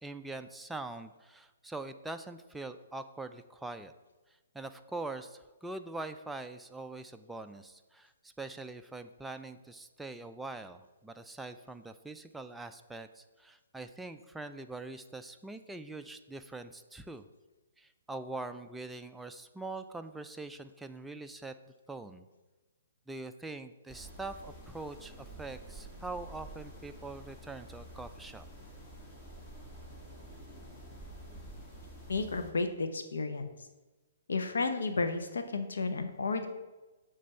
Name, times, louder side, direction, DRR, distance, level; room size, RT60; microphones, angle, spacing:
voice 1, 0.0-3.9 4.5-17.3 17.8-21.5 21.9-22.3 23.1-28.5, right 2 dB, 5° right, 7 dB, 0.3 m, -43 dB
sound 1, 23.9-32.5, right 1 dB, 15° left, 1.4 m, -49 dB
voice 2, 32.1-33.5 34.3-36.5, left 3 dB, 75° left, 7 dB, 0.8 m, -32 dB
7.3 x 3.3 x 5.6 m, 1.2 s
hypercardioid pair, 130°, 0 cm